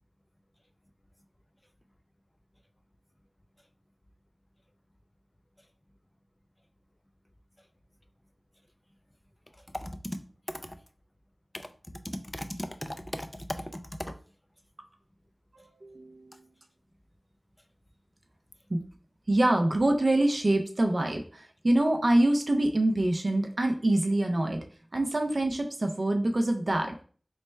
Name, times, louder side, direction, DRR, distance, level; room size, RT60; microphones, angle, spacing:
voice 1, 9.7-10.2 10.6-10.8 11.5-11.7 12.0-14.1, equal, 15° left, 9 dB, 0.4 m, -37 dB
voice 2, 15.5-16.3 18.7-18.8 19.3-24.6 24.9-26.9, right 1 dB, 55° right, 4 dB, 0.4 m, -25 dB
3.1 x 2.2 x 4.2 m, 0.43 s
wide cardioid pair, 70°, 0 cm